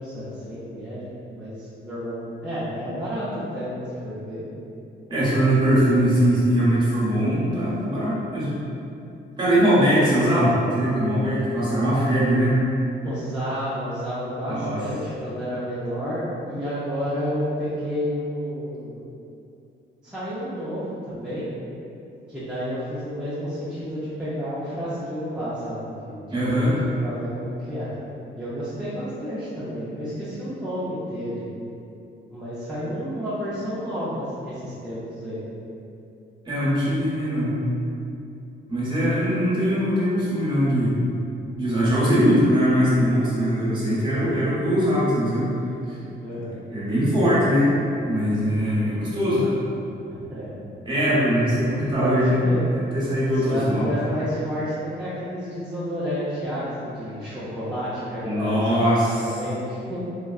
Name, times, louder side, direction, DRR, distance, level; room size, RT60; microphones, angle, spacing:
voice 1, 0.0-4.5 13.0-19.0 20.0-21.5 22.3-27.9 28.4-31.5 32.3-35.4 46.2-46.6 50.0-50.5 51.4-52.7 53.3-60.0, equal, 5° right, -13 dB, 0.5 m, -31 dB
voice 2, 5.1-8.5 9.4-12.6 14.5-14.8 26.3-26.7 36.4-37.6 38.7-40.9 41.6-45.5 45.9-46.0 46.7-47.7 48.0-49.6 50.8-52.4 52.7-53.9 58.2-59.2, equal, 25° right, -10 dB, 1.0 m, -21 dB
3.7 x 2.2 x 2.3 m, 2.7 s
cardioid pair, 130°, 20 cm